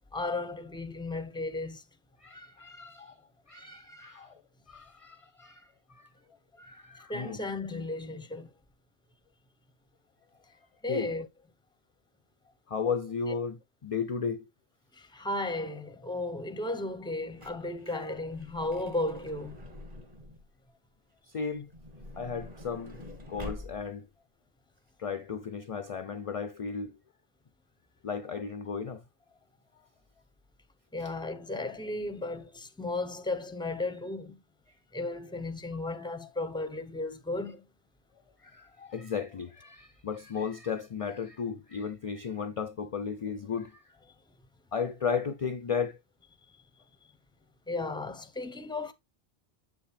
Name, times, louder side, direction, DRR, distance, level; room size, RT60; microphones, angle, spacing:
voice 1, 0.1-1.8 7.1-8.5 10.8-11.3 14.9-19.6 30.9-34.4 34.9-37.6 47.7-48.9, left 2 dB, 5° left, 0.6 m, -34 dB
voice 2, 2.2-3.1 3.5-4.4 4.7-5.7 5.9-6.1 6.5-7.4 10.9-11.1 12.7-14.4 21.3-21.7 22.2-23.0 23.3-24.1 25.0-27.0 28.0-29.0 38.4-43.8 44.7-46.0, left 6 dB, 45° left, 0.5 m, -34 dB
Truck / Door, 17.0-20.5 21.5-24.1 24.8-24.9 25.0-25.2, left 1 dB, 40° right, 1.8 m, -46 dB
7.9 x 6.0 x 3.2 m
omnidirectional pair, 1.1 m